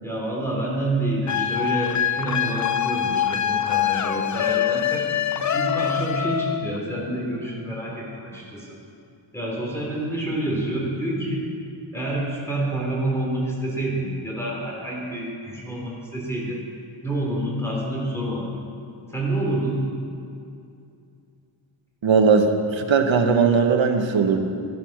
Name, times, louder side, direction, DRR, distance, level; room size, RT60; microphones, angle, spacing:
voice 1, 0.0-5.1 5.5-8.8 9.3-11.4 11.9-16.6 17.0-18.5 19.1-19.8, right 1 dB, 5° left, -3 dB, 3.2 m, -28 dB
sound 1, 1.3-6.8, left 9 dB, 40° left, 0.4 m, -24 dB
voice 2, 22.0-24.4, right 5 dB, 65° right, 4 dB, 1.2 m, -19 dB
13.0 x 11.0 x 6.0 m, 2.5 s
wide cardioid pair, 140°, 49 cm